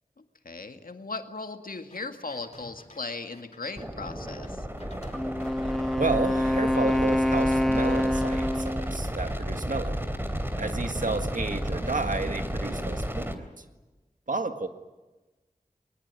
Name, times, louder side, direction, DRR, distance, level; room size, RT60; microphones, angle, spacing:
voice 1, 0.4-4.7, left 3 dB, 85° left, 6 dB, 2.0 m, -37 dB
sound 1, 1.9-3.0 3.3-9.4, left 2 dB, 50° left, 4.2 m, -52 dB
sound 2, 3.8-13.3, equal, 15° right, 3.0 m, -33 dB
Wind instrument woodwind instrument, 5.1-9.0, left 1 dB, ahead, 1.4 m, -26 dB
voice 2, 5.9-10.1 10.5-13.6 14.3-14.7, right 3 dB, 65° right, 7 dB, 1.8 m, -31 dB
22.0 x 20.0 x 9.7 m, 1.2 s
wide cardioid pair, 45°, 14 cm